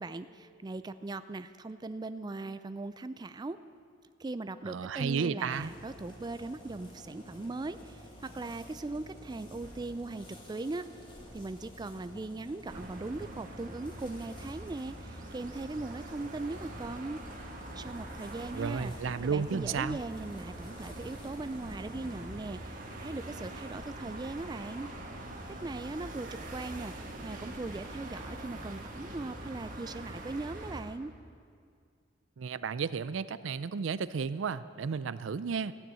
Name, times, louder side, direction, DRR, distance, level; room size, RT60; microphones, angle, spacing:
voice 1, 0.0-3.6 4.2-10.9 11.3-17.2 17.7-18.9 19.2-24.9 25.5-31.1, right 2 dB, 20° right, 12 dB, 0.4 m, -39 dB
voice 2, 4.6-5.7 18.5-20.0 32.4-35.7, right 6 dB, 90° right, 15 dB, 0.4 m, -33 dB
sound 1, 5.5-22.3, equal, 25° left, 2.0 m, -51 dB
sound 2, 12.6-30.8, right 1 dB, 45° right, 1.7 m, -44 dB
14.5 x 9.8 x 7.5 m, 2.2 s
head